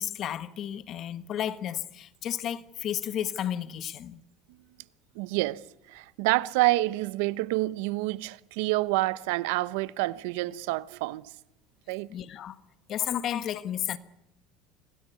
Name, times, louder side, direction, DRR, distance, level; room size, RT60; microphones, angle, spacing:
voice 1, 0.0-4.2 12.1-12.6 12.9-14.0, left 10 dB, 40° left, 1.5 m, -32 dB
voice 2, 5.1-5.6 5.9-11.3 11.9-12.1, right 19 dB, 85° right, 0.9 m, -28 dB
26.0 x 17.0 x 9.6 m
cardioid pair, 140°, 0 cm